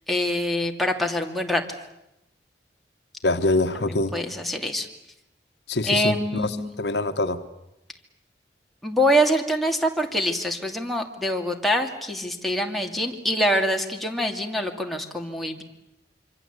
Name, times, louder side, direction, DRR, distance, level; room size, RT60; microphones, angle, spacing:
voice 1, 0.1-1.6 3.9-4.9 5.9-6.7 8.8-15.6, equal, ahead, 1 dB, 2.5 m, -25 dB
voice 2, 3.2-4.2 5.7-7.4, left 2 dB, 70° left, 8 dB, 1.3 m, -25 dB
26.5 x 25.0 x 8.3 m, 0.84 s
head